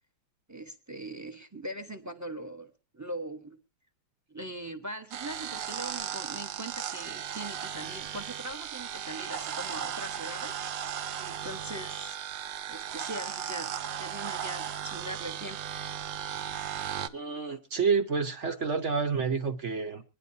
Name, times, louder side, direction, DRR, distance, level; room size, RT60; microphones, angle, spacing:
voice 1, 0.5-3.6 4.3-10.6 11.2-12.2 12.7-15.7, right 1 dB, 15° right, 0.6 m, -41 dB
sound 1, 5.1-17.1, right 9 dB, 80° right, 1.5 m, -36 dB
voice 2, 17.1-20.0, right 5 dB, 50° right, 1.1 m, -29 dB
24.5 x 10.5 x 2.7 m
omnidirectional pair, 2.0 m